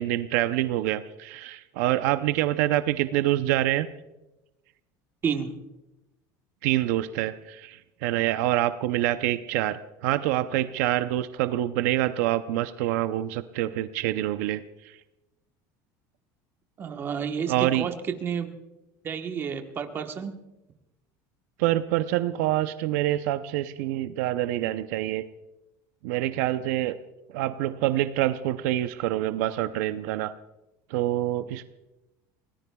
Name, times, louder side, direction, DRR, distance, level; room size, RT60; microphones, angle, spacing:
voice 1, 0.0-3.9 6.6-15.0 17.5-17.9 21.6-25.2 26.0-26.9 27.3-30.3 30.9-31.6, right 14 dB, 85° right, 11 dB, 0.6 m, -26 dB
voice 2, 5.2-5.5 16.8-18.5 19.0-20.3, right 7 dB, 25° right, 5 dB, 1.2 m, -30 dB
29.5 x 18.0 x 2.3 m, 0.96 s
cardioid pair, 160°, 9 cm